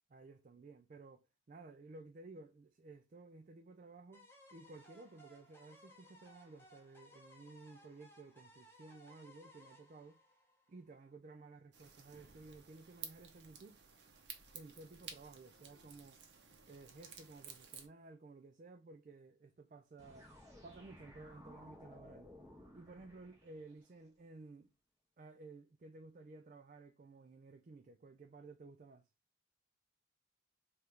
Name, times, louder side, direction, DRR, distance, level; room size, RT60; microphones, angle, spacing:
voice 1, 0.1-1.2 1.5-10.2 10.7-13.8 14.5-16.2 16.7-20.3 20.6-22.3 22.7-24.7 25.2-29.1, right 3 dB, 40° right, 0.3 m, -55 dB
sound 1, 4.1-11.1, left 1 dB, 10° left, 0.8 m, -62 dB
sound 2, 11.7-17.9, right 7 dB, 60° right, 0.7 m, -54 dB
sound 3, 20.0-23.9, left 1 dB, 20° right, 1.1 m, -58 dB
4.4 x 2.5 x 3.3 m
head